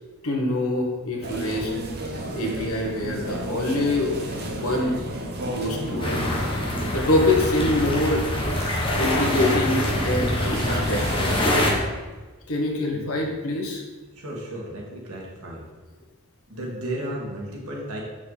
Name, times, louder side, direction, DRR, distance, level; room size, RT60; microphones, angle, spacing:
voice 1, 0.2-1.7 2.3-4.2 4.6-5.0 5.5-6.2 6.9-8.2 9.0-11.4 12.5-13.8, left 1 dB, 75° left, 0 dB, 1.5 m, -25 dB
sound 1, 1.2-11.8, right 1 dB, 45° right, 1.1 m, -33 dB
sound 2, 6.0-11.7, left 1 dB, 25° left, 1.3 m, -25 dB
voice 2, 14.2-15.6 16.5-18.0, right 1 dB, 85° right, -3 dB, 1.9 m, -33 dB
6.9 x 6.2 x 4.1 m, 1.3 s
head